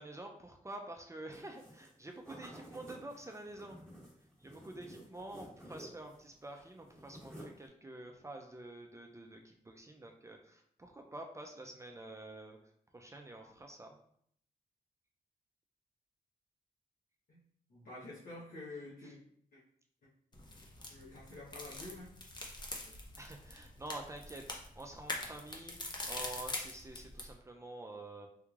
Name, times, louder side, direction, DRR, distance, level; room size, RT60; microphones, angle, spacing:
voice 1, 0.0-3.8 4.4-12.6 12.9-14.0 19.0-19.1 23.2-28.3, right 2 dB, 20° right, 2 dB, 0.4 m, -48 dB
sound 1, 1.3-1.9 2.2-6.2 6.5-7.7, equal, 5° left, 1.4 m, -53 dB
voice 2, 17.7-19.2 19.5-19.6 20.9-22.1 22.8-23.0, left 2 dB, 75° left, -9 dB, 1.0 m, -48 dB
sound 2, 20.3-27.3, left 2 dB, 30° left, 0.6 m, -44 dB
3.5 x 3.1 x 2.4 m, 0.66 s
wide cardioid pair, 95°, 15 cm